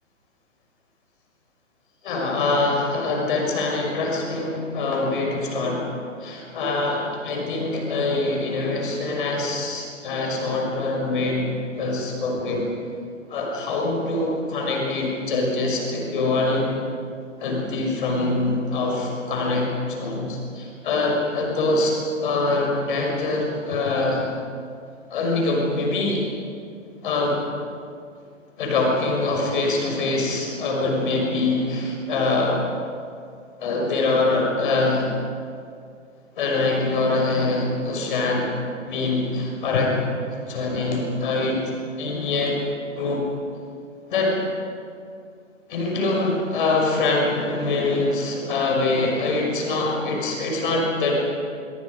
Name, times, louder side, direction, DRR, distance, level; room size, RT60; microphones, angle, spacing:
voice 1, 2.0-11.5 11.8-12.7 13.3-16.7 17.4-21.9 22.2-24.3 25.1-26.2 27.0-27.4 28.6-32.7 33.6-35.1 36.4-38.5 38.9-40.0 40.5-41.6 42.0-42.6 43.0-43.2 44.1-44.4 45.7-51.2, left 2 dB, 40° left, 0 dB, 6.1 m, -24 dB
26.0 x 24.5 x 5.3 m, 2.3 s
figure-of-eight pair, 125°, 38 cm